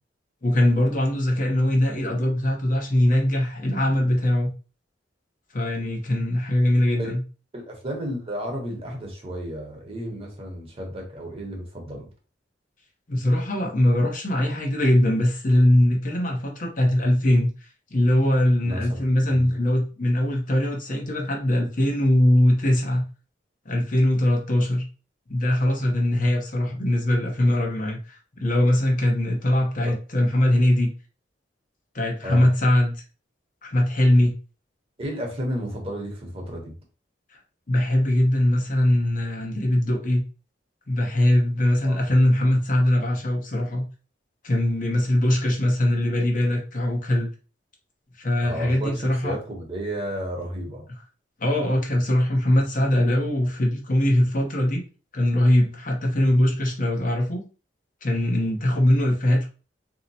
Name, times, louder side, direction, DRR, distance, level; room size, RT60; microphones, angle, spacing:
voice 1, 0.4-4.5 5.5-7.2 13.1-17.5 17.9-23.0 23.6-24.9 25.3-30.9 31.9-32.9 33.6-34.4 37.3-37.4 37.7-40.2 40.9-43.8 44.4-47.3 48.2-49.3 51.4-54.8 55.1-57.5 58.0-59.4, left 1 dB, 50° left, 0 dB, 0.9 m, -21 dB
voice 2, 7.5-12.1 18.6-19.5 29.8-29.9 32.2-32.5 35.0-36.7 41.8-42.0 48.4-50.9, equal, 35° right, 0 dB, 1.0 m, -32 dB
2.8 x 2.1 x 4.0 m, 0.35 s
head